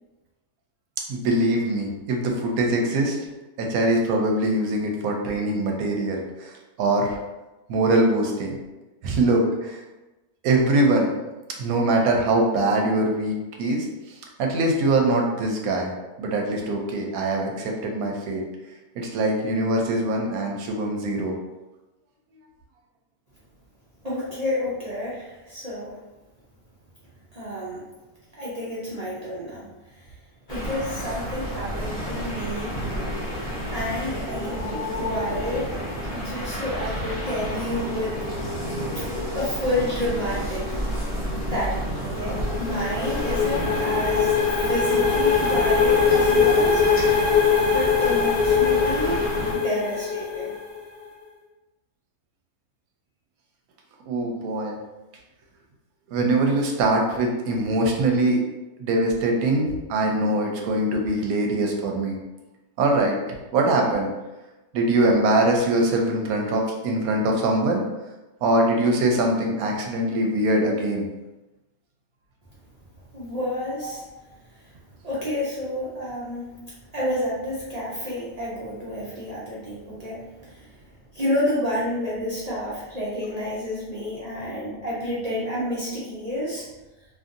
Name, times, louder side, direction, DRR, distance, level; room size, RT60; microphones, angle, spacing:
voice 1, 1.1-3.2 3.6-7.2 7.7-8.6 9.0-9.8 10.4-11.1 11.6-13.9 14.4-15.9 16.2-18.4 18.9-21.3 54.1-54.8 56.1-58.4 58.8-62.2 62.8-63.2 63.5-64.1 64.7-67.8 68.4-71.1 73.8-73.9, right 2 dB, 80° right, 1 dB, 1.0 m, -22 dB
voice 2, 24.0-26.0 27.3-27.9 28.4-30.1 30.5-33.1 33.7-38.2 38.9-39.0 39.3-40.8 41.5-44.4 44.6-46.8 47.7-49.3 49.5-50.5 73.1-74.2 74.5-74.6 75.0-76.6 76.9-80.9 81.1-86.7, left 1 dB, 55° right, -8 dB, 0.4 m, -30 dB
sound 1, 30.5-49.5, equal, 35° left, 0.9 m, -30 dB
sound 2, 42.1-50.8, left 6 dB, 85° left, 1.1 m, -22 dB
2.7 x 2.6 x 2.5 m, 1.1 s
omnidirectional pair, 1.5 m